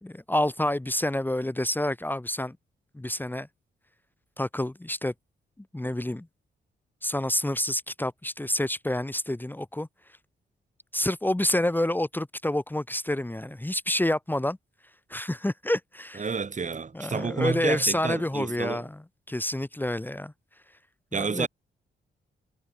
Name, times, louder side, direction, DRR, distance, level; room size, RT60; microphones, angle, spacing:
voice 1, 0.0-2.6 2.9-3.5 4.4-5.1 5.7-6.3 7.0-9.9 10.9-14.6 15.1-16.3 16.9-19.0 19.3-20.3 21.1-21.5, left 1 dB, 10° left, 1.6 m, -28 dB
voice 2, 16.2-18.8 21.1-21.5, right 5 dB, 40° right, 2.6 m, -30 dB
cardioid pair, 70°, 19 cm